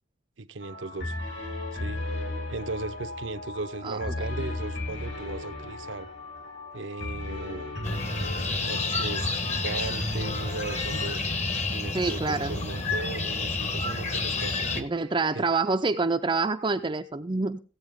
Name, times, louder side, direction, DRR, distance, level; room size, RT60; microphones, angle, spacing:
voice 1, 0.4-1.2 1.7-2.0 2.5-6.1 6.7-7.7 8.5-11.2 11.7-14.9 15.3-15.4, right 3 dB, 75° right, 0.7 m, -37 dB
sound 1, 0.6-11.1, left 2 dB, 60° left, 3.5 m, -36 dB
sound 2, 7.8-14.8, left 3 dB, 35° left, 1.1 m, -30 dB
voice 2, 11.9-12.6 14.8-17.6, right 3 dB, 25° right, 0.5 m, -27 dB
16.0 x 8.2 x 3.6 m
head